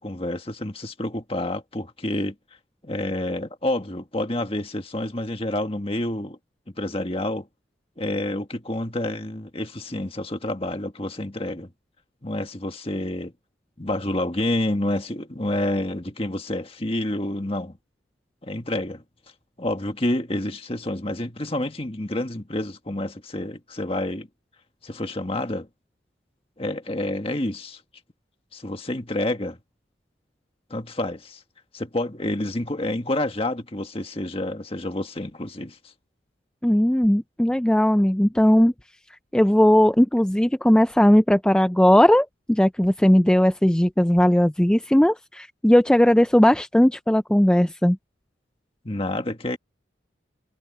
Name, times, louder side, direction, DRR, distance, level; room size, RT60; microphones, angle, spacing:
voice 1, 0.0-2.3 2.8-6.4 6.8-7.5 8.0-11.7 12.2-13.3 13.8-17.7 18.4-19.0 19.6-24.3 24.8-25.7 26.6-27.8 28.5-29.6 30.7-31.4 31.7-35.8 48.8-49.6, left 1 dB, 30° left, 1.7 m, -28 dB
voice 2, 36.6-38.7 39.3-48.0, equal, 5° left, 0.3 m, -18 dB
head